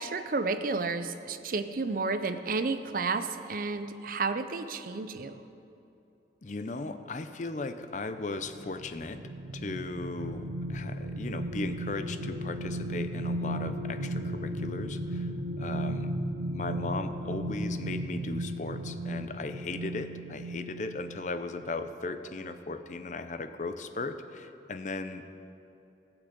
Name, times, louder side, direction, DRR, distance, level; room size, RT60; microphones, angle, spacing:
voice 1, 0.0-5.4, right 3 dB, 50° right, 10 dB, 0.6 m, -31 dB
voice 2, 6.4-9.2 9.5-16.2 16.4-25.3, left 3 dB, 40° left, 10 dB, 0.6 m, -37 dB
sound 1, 8.3-21.3 21.7-21.9, right 1 dB, 85° right, 0.8 m, -35 dB
15.5 x 6.0 x 8.2 m, 2.8 s
head